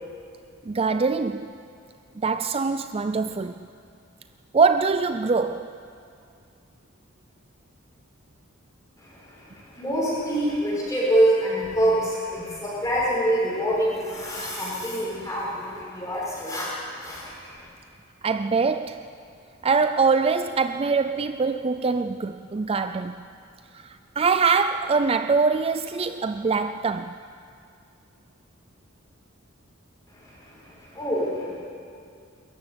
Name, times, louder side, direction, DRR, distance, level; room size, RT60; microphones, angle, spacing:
voice 1, 0.7-1.5 2.2-3.6 4.5-5.7 18.2-19.1 19.6-23.2 23.7-27.2, right 4 dB, 30° right, 0.4 m, -23 dB
voice 2, 9.0-17.6 30.1-31.5, right 1 dB, 15° left, 7.0 m, -26 dB
20.5 x 14.0 x 9.8 m
head